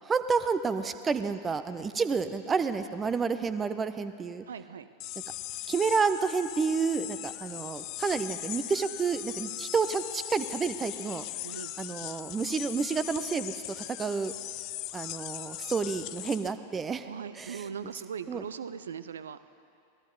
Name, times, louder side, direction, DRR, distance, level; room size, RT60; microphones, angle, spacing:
voice 1, 0.0-4.4 5.7-11.2 11.8-14.3 14.9-17.1 17.4-17.6 18.3-18.5, right 5 dB, 20° right, 11 dB, 0.6 m, -30 dB
voice 2, 4.5-4.9 11.4-11.7 17.0-19.4, right 7 dB, 65° right, 13 dB, 0.5 m, -39 dB
sound 1, 5.0-16.5, left 15 dB, 40° left, 0.4 m, -39 dB
17.5 x 14.0 x 4.0 m, 2.5 s
figure-of-eight pair, 90°, 0 cm